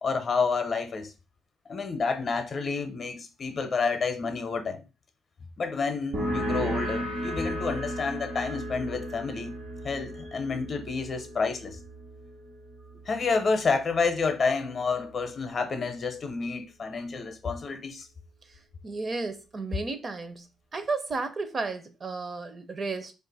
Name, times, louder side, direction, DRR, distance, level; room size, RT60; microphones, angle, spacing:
voice 1, 0.0-1.1 1.7-4.8 5.6-9.5 9.8-11.8 13.1-18.1, left 4 dB, 45° left, 0.6 m, -29 dB
sound 1, 6.1-13.4, equal, 65° right, 1.2 m, -34 dB
voice 2, 18.8-20.5 20.7-23.1, right 3 dB, 40° right, 0.5 m, -33 dB
2.5 x 2.4 x 4.0 m
cardioid pair, 90°, 0 cm